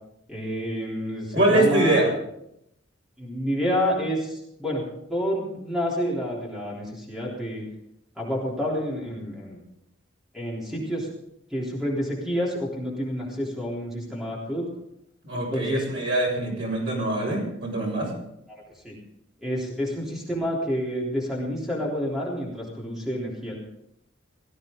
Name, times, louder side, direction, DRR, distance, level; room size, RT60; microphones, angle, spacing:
voice 1, 0.3-2.0 3.2-4.8 5.1-7.6 8.2-9.6 10.3-11.1 11.5-14.6 15.3-15.9 18.5-19.0 19.4-23.6, equal, ahead, -5 dB, 3.6 m, -29 dB
voice 2, 1.3-2.1 15.2-18.1, right 2 dB, 75° right, -2 dB, 7.2 m, -23 dB
18.0 x 14.5 x 3.9 m, 0.80 s
head